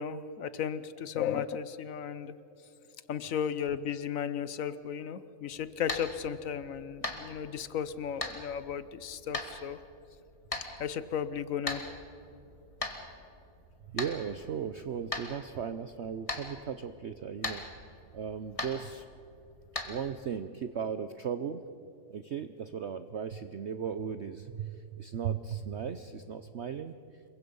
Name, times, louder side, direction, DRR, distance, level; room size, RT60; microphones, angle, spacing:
voice 1, 0.0-2.4 3.1-9.8 10.8-11.8, left 8 dB, 55° left, 14 dB, 1.1 m, -35 dB
sound 1, 5.5-20.1, left 2 dB, 20° left, 1.7 m, -41 dB
voice 2, 13.9-19.0 19.8-21.6 22.1-26.9, right 7 dB, 60° right, 10 dB, 0.7 m, -37 dB
27.5 x 23.0 x 5.4 m, 2.8 s
omnidirectional pair, 1.9 m